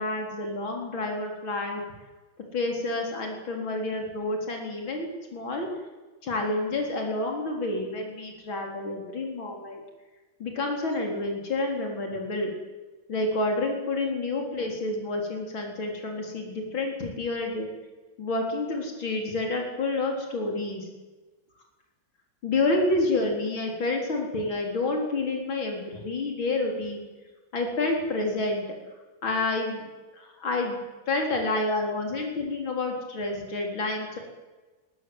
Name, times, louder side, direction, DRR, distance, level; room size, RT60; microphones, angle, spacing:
voice 1, 0.0-1.8 2.5-5.7 6.2-9.8 10.4-12.5 13.1-17.7 18.2-20.9 22.4-27.0 27.5-28.6 29.2-29.8 30.1-34.2, left 2 dB, 75° left, 2 dB, 4.8 m, -29 dB
22.5 x 19.0 x 8.0 m, 1.2 s
omnidirectional pair, 2.2 m